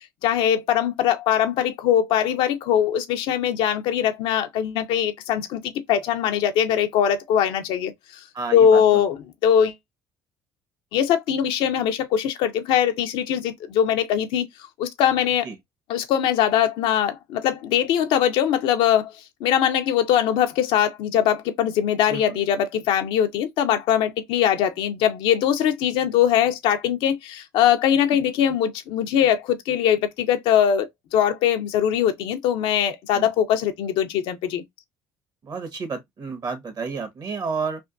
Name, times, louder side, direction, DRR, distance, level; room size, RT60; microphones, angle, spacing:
voice 1, 0.2-7.9 8.5-9.2 9.4-9.7 10.9-14.5 14.8-15.5 15.9-19.1 19.4-34.6, left 9 dB, 75° left, 0.7 m, -21 dB
voice 2, 8.3-8.8 15.4-15.6 22.1-22.2 33.1-33.3 35.4-37.8, right 4 dB, 45° right, 1.3 m, -30 dB
3.4 x 2.5 x 2.5 m
supercardioid pair, 75°, 9 cm